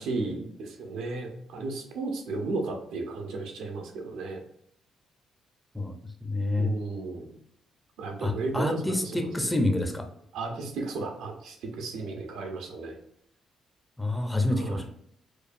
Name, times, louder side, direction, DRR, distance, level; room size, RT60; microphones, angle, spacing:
voice 1, 0.0-4.4 6.6-7.4 8.0-9.5 10.3-13.0 14.6-14.8, right 3 dB, 90° right, 2 dB, 0.9 m, -34 dB
voice 2, 6.2-6.7 8.2-10.1 14.0-15.0, left 2 dB, 10° left, 5 dB, 0.6 m, -28 dB
4.7 x 2.3 x 2.6 m, 0.71 s
cardioid pair, 90°, 0 cm